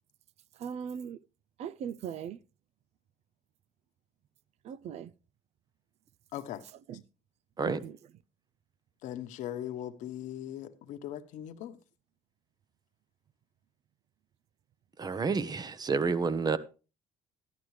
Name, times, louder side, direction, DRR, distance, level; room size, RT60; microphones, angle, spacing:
voice 1, 0.6-1.2 1.6-2.4 4.6-5.1 6.9-7.0 7.6-8.0, right 8 dB, 55° right, 0.5 m, -39 dB
voice 2, 6.3-6.6 9.0-11.8, left 11 dB, 70° left, 1.1 m, -39 dB
voice 3, 15.0-16.6, right 5 dB, 30° right, 0.9 m, -29 dB
13.0 x 11.0 x 3.2 m
supercardioid pair, 85°, 13 cm